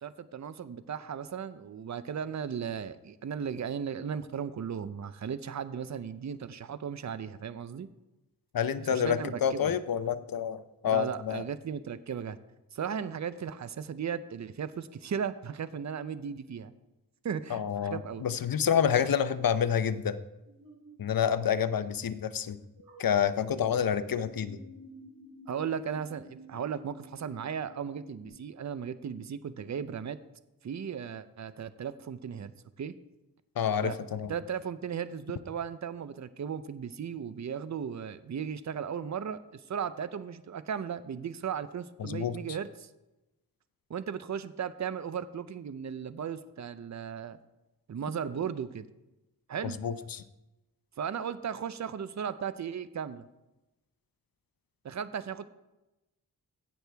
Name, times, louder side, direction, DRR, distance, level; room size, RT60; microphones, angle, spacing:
voice 1, 0.0-7.9 8.9-9.8 10.9-12.4 12.7-16.7 17.2-18.2 25.5-30.2 30.6-32.5 32.8-32.9 33.8-34.0 34.3-42.9 43.9-47.4 47.9-48.9 49.5-49.8 51.0-53.2 54.8-55.4, right 7 dB, 50° right, 14 dB, 0.6 m, -36 dB
voice 2, 8.5-11.4 17.5-20.2 21.0-22.6 23.0-24.6 33.6-34.3 42.0-42.4 49.6-50.2, left 8 dB, 65° left, 13 dB, 0.7 m, -28 dB
sound 1, 20.4-21.0 22.8-23.7 24.1-28.3, right 1 dB, 70° right, 2.6 m, -52 dB
16.5 x 6.3 x 3.4 m, 0.98 s
wide cardioid pair, 70°, 37 cm